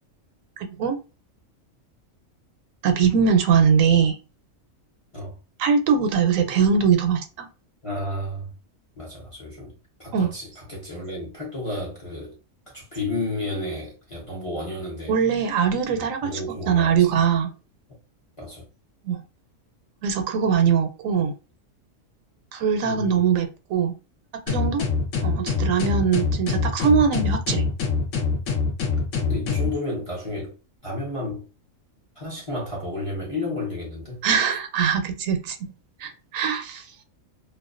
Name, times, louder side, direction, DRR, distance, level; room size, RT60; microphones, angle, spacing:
voice 1, 0.6-1.0 2.8-4.2 5.6-7.5 10.1-10.3 15.1-16.4 16.7-17.5 19.0-19.2 20.0-21.3 22.5-23.9 24.5-24.8 25.2-27.6 34.2-35.6 36.0-36.8, right 6 dB, 80° right, 1.0 m, -21 dB
voice 2, 7.8-8.5 9.0-9.7 10.0-12.4 12.7-15.2 15.9-17.2 18.4-18.6 22.8-23.2 29.3-30.6 30.8-31.5 32.2-34.2, left 2 dB, 35° left, 0.6 m, -32 dB
sound 1, 24.5-29.7, left 4 dB, 75° left, 0.9 m, -24 dB
2.4 x 2.2 x 2.4 m
omnidirectional pair, 1.4 m